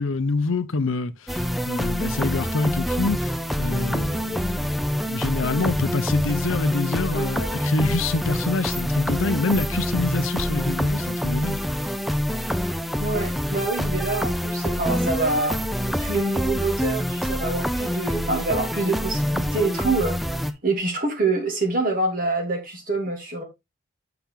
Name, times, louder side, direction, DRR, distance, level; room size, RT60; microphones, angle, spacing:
voice 1, 0.0-3.3 3.6-4.8 5.1-11.6, left 3 dB, 75° left, 0.7 m, -26 dB
sound 1, 1.3-20.5, equal, ahead, 0.4 m, -26 dB
voice 2, 13.0-20.2 20.6-23.4, right 2 dB, 40° right, 2.8 m, -26 dB
7.4 x 5.8 x 3.6 m
head